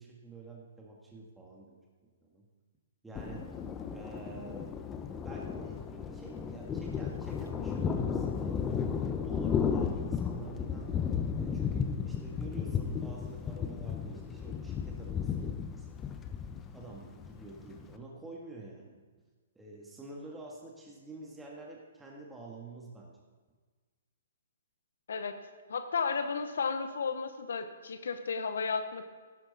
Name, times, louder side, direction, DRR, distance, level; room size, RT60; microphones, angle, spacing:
voice 1, 0.0-2.5 3.0-3.6 3.9-4.8 5.2-5.9 6.1-8.6 9.1-11.0 11.4-16.2 16.7-19.0 19.5-23.2, right 2 dB, 5° right, -3 dB, 1.7 m, -48 dB
Thunder, 3.2-18.0, left 6 dB, 20° left, 0.8 m, -34 dB
voice 2, 25.7-29.1, left 5 dB, 75° left, 8 dB, 1.0 m, -33 dB
12.0 x 11.0 x 4.1 m, 1.4 s
hypercardioid pair, 135°, 0 cm